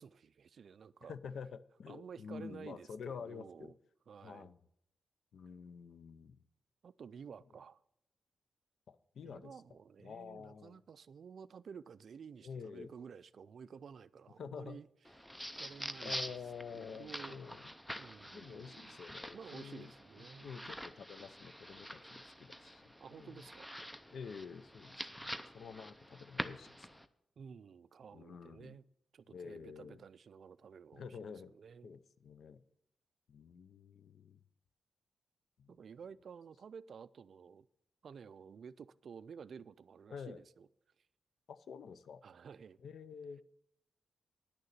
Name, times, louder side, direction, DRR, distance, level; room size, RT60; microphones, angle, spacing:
voice 1, 0.0-1.2 1.9-3.7 4.1-4.5 6.8-7.8 9.2-14.9 15.6-16.4 16.7-17.4 18.0-19.0 19.3-20.7 23.0-23.7 27.4-28.8 29.1-31.2 31.5-31.9 35.7-37.7 38.0-40.7 42.2-42.8, right 6 dB, 55° right, 0.3 m, -52 dB
voice 2, 1.0-3.7 4.2-4.6 5.3-6.4 8.9-9.6 10.0-10.8 12.4-12.9 14.4-14.8 16.0-17.7 18.2-23.4 24.1-26.9 28.1-28.8 29.3-30.0 30.9-31.5 31.8-32.6 33.3-34.4 35.6-35.7 40.1-40.4 41.5-42.2 42.8-43.4, left 6 dB, 65° left, 0.5 m, -49 dB
sound 1, 15.0-27.1, equal, 5° left, 0.5 m, -46 dB
10.0 x 6.6 x 7.3 m
wide cardioid pair, 140°, 0 cm